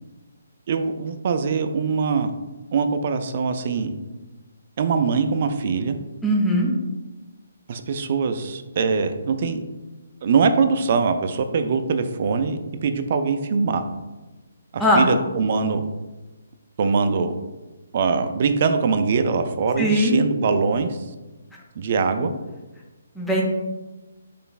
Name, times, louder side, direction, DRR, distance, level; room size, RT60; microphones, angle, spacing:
voice 1, 0.7-2.3 2.7-3.9 4.8-6.0 7.7-9.6 10.2-13.8 14.7-15.8 16.8-17.3 17.9-20.9 21.8-22.3, right 5 dB, 45° right, 8 dB, 0.3 m, -22 dB
voice 2, 6.2-6.7 14.8-15.0 19.8-20.2 23.2-23.4, equal, 5° left, -3 dB, 0.6 m, -19 dB
3.9 x 3.2 x 2.3 m, 1.1 s
figure-of-eight pair, 145°, 0 cm